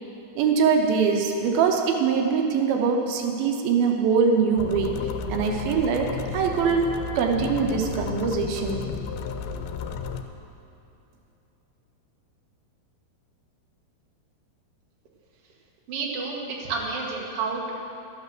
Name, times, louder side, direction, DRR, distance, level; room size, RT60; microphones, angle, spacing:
voice 1, 0.4-8.9, right 5 dB, 85° right, 2 dB, 2.8 m, -23 dB
sound 1, 4.6-10.2, left 6 dB, 85° left, 2.5 m, -33 dB
voice 2, 15.9-17.7, right 4 dB, 50° right, -3 dB, 2.2 m, -30 dB
13.0 x 8.6 x 6.7 m, 2.8 s
omnidirectional pair, 4.2 m